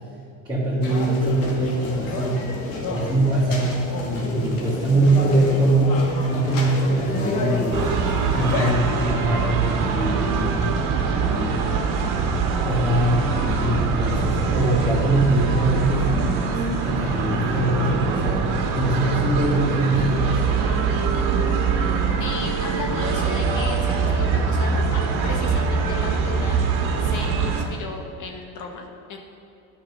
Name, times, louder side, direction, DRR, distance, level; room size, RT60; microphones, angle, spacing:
voice 1, 0.5-2.4 2.9-7.8 8.3-10.7 11.2-11.7 12.6-16.1 16.5-18.4 18.7-20.5, right 1 dB, 10° right, -10 dB, 2.4 m, -22 dB
sound 1, 0.8-8.7, left 2 dB, 80° left, 2.0 m, -29 dB
sound 2, 7.7-27.6, right 5 dB, 60° right, 1.5 m, -23 dB
voice 2, 22.2-26.6 27.0-29.2, left 4 dB, 50° left, 2 dB, 1.1 m, -34 dB
9.4 x 5.7 x 6.3 m, 2.6 s
supercardioid pair, 120°, 39 cm